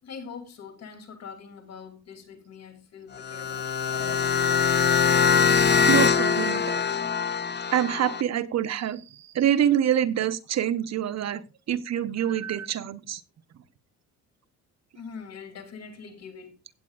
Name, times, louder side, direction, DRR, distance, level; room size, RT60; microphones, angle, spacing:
voice 1, 0.0-4.1 14.9-16.6, left 6 dB, 60° left, 2.9 m, -43 dB
sound 1, 3.2-8.2, left 6 dB, 35° left, 0.8 m, -23 dB
voice 2, 5.4-6.8 7.7-13.2, right 10 dB, 60° right, 0.9 m, -26 dB
16.5 x 8.6 x 2.4 m
cardioid pair, 90°, 30 cm